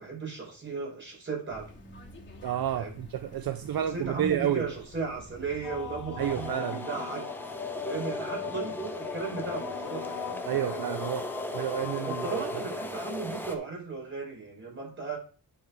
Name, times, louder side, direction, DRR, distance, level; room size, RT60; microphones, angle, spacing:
voice 1, 0.0-1.7 2.7-3.0 3.6-7.2 7.8-10.8 12.1-15.2, right 4 dB, 30° right, 5.1 m, -36 dB
sound 1, 1.5-6.5, left 1 dB, 30° left, 2.8 m, -48 dB
voice 2, 2.4-4.6 6.2-6.8 10.5-12.4, right 11 dB, 70° right, 0.6 m, -30 dB
sound 2, 5.6-13.3, left 9 dB, 55° left, 0.8 m, -39 dB
sound 3, 6.2-13.5, left 1 dB, 5° left, 1.0 m, -38 dB
9.6 x 4.9 x 4.7 m
wide cardioid pair, 130°, 37 cm